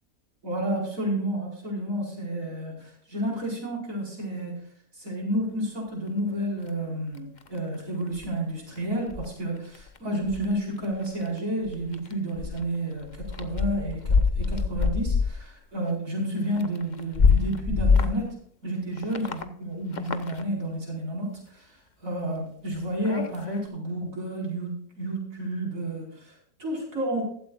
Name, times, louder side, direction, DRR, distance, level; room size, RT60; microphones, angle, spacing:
voice 1, 0.4-4.5 4.9-18.4 18.6-27.2, right 1 dB, 60° right, -2 dB, 5.2 m, -31 dB
sound 1, 6.7-6.8 7.2-7.8 8.2-8.3 8.8-8.9 9.1-9.2 9.7-10.5 10.9-11.4 11.7-12.1 12.4-12.6 13.0-15.4 15.6-15.7 16.6-18.3 19.0-19.4 19.9-20.4 22.7-23.6, left 5 dB, 35° left, 0.8 m, -25 dB
15.5 x 12.5 x 2.4 m, 0.62 s
omnidirectional pair, 1.6 m